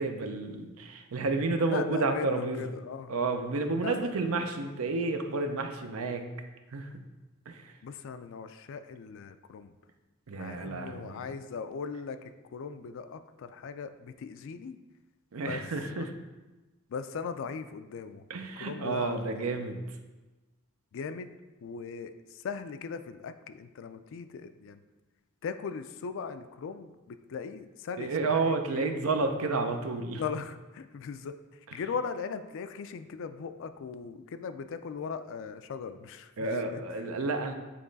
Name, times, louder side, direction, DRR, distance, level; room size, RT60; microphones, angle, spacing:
voice 1, 0.0-2.7 3.1-6.3 6.7-6.9 7.5-7.7 10.3-11.2 15.3-16.1 18.3-19.8 28.0-30.2 36.4-37.5, right 3 dB, 75° right, 6 dB, 0.6 m, -31 dB
voice 2, 1.7-3.2 3.8-4.7 7.8-9.7 10.3-14.8 15.4-15.6 15.9-16.1 16.9-18.2 18.6-19.5 20.9-21.3 21.6-24.8 25.4-28.9 30.2-36.8 37.4-37.5, left 5 dB, 60° left, 10 dB, 0.4 m, -39 dB
8.4 x 3.1 x 4.0 m, 1.2 s
head